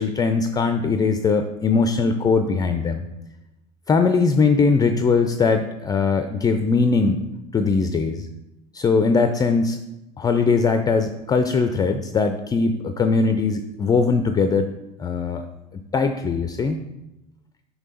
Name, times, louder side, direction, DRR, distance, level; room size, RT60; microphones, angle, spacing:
voice 1, 0.0-3.0 3.9-7.2 7.5-8.3 8.7-9.8 10.2-14.7 15.0-15.5 15.9-16.8, left 4 dB, 20° left, 8 dB, 0.4 m, -20 dB
5.8 x 5.4 x 3.9 m, 0.93 s
hypercardioid pair, 80°, 21 cm